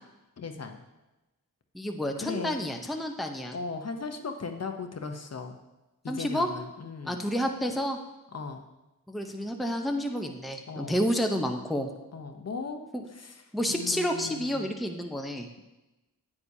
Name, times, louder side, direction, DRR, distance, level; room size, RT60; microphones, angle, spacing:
voice 1, 0.4-0.8 2.2-2.7 3.5-5.6 6.0-7.2 8.3-8.6 10.7-11.0 12.1-12.8 13.1-13.4 13.7-14.7, left 4 dB, 45° left, 6 dB, 0.8 m, -37 dB
voice 2, 1.7-3.6 6.1-6.5 7.0-8.0 9.1-11.9 12.9-13.0 13.5-15.5, equal, ahead, 4 dB, 0.7 m, -30 dB
9.5 x 8.5 x 2.7 m, 1.0 s
cardioid pair, 75°, 35 cm